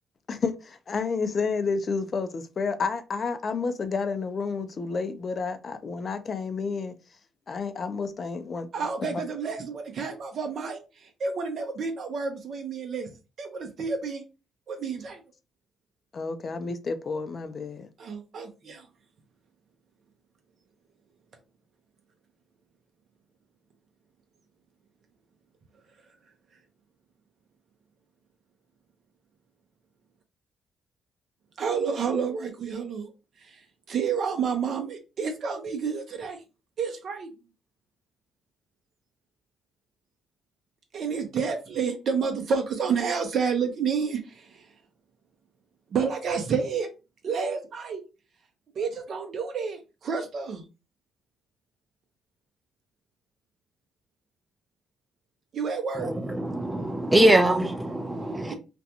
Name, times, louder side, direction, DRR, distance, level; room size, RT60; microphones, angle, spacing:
voice 1, 0.3-6.9 7.5-8.7 9.1-9.2 16.1-17.9, left 4 dB, 45° left, 0.4 m, -30 dB
voice 2, 8.7-13.1 13.4-14.2 14.7-15.2 18.0-18.8 31.6-33.1 33.4-33.6 33.9-36.4 36.8-37.3 40.9-44.7 45.9-46.9 47.2-48.0 48.8-50.6 55.5-56.1 58.5-58.6, right 6 dB, 60° right, 0.6 m, -29 dB
voice 3, 56.0-58.5, right 1 dB, 10° right, 0.5 m, -23 dB
2.5 x 2.2 x 2.8 m
cardioid pair, 90°, 0 cm